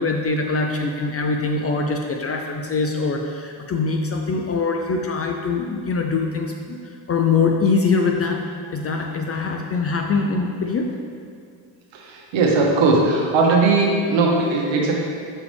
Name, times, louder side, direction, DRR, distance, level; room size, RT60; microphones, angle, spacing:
voice 1, 0.0-8.4 8.7-11.0, left 4 dB, 30° left, 2 dB, 0.4 m, -23 dB
voice 2, 11.9-15.0, right 3 dB, 65° right, -1 dB, 1.3 m, -18 dB
6.4 x 4.9 x 3.4 m, 2.2 s
cardioid pair, 95°, 50 cm